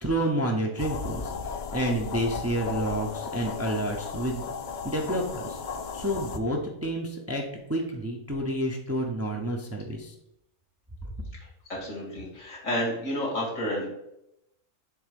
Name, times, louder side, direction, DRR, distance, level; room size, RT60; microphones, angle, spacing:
voice 1, 0.0-4.5 4.8-5.6 5.9-7.4 7.7-10.1, right 1 dB, 15° right, 0 dB, 0.6 m, -29 dB
sound 1, 0.8-6.4, left 5 dB, 70° left, 0.4 m, -35 dB
voice 2, 11.4-13.9, equal, 85° left, -3 dB, 2.6 m, -31 dB
7.0 x 3.6 x 5.1 m, 0.84 s
omnidirectional pair, 1.3 m